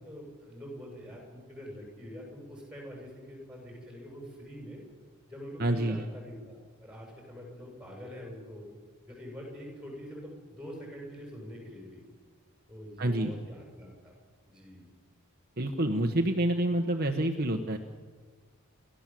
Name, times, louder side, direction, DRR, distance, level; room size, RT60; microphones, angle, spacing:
voice 1, 0.0-4.8 5.3-8.7 9.0-12.1 12.7-14.1 14.5-14.9, equal, 5° right, 0 dB, 7.3 m, -45 dB
voice 2, 5.6-6.0 13.0-13.3 15.6-17.8, right 1 dB, 45° right, 5 dB, 1.2 m, -28 dB
29.5 x 13.0 x 7.6 m, 1.4 s
head